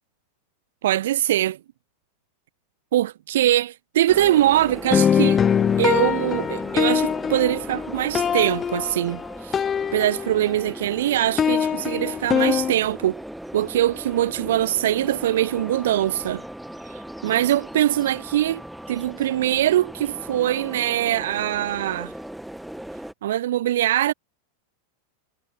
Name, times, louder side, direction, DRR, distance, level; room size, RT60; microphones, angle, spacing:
voice 1, 0.8-1.6 2.9-5.4 5.8-9.6 9.9-13.2 13.5-16.4 16.9-18.6 18.9-22.1 23.2-24.1, right 13 dB, 60° right, 0.9 m, -22 dB
sound 1, 4.1-23.1, right 1 dB, ahead, 1.5 m, -37 dB
sound 2, 4.9-10.7 10.9-12.7, left 8 dB, 20° left, 0.4 m, -23 dB
figure-of-eight pair, 90°, 0 cm